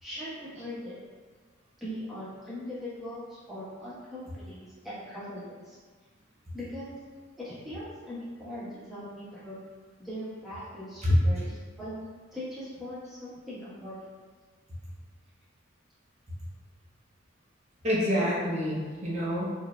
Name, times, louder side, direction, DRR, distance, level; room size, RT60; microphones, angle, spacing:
voice 1, 0.0-1.0 1.8-5.8 6.5-7.0 7.4-9.6 10.0-13.9, equal, ahead, -12 dB, 1.2 m, -40 dB
voice 2, 11.0-11.5 17.8-19.5, equal, 30° right, -6 dB, 0.8 m, -26 dB
4.6 x 2.7 x 2.3 m, 1.5 s
head